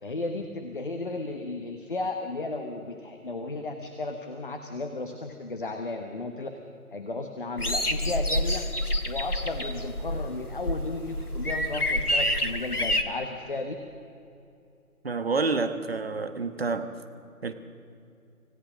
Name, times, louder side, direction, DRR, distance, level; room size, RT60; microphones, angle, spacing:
voice 1, 0.0-6.5 6.9-8.7 9.1-13.7, left 2 dB, 35° left, 1.1 m, -34 dB
sound 1, 7.6-13.0, left 1 dB, 85° left, 1.7 m, -28 dB
voice 2, 15.0-17.0 17.4-17.5, right 4 dB, 40° right, 1.2 m, -28 dB
25.5 x 16.5 x 6.2 m
figure-of-eight pair, 155°, 44 cm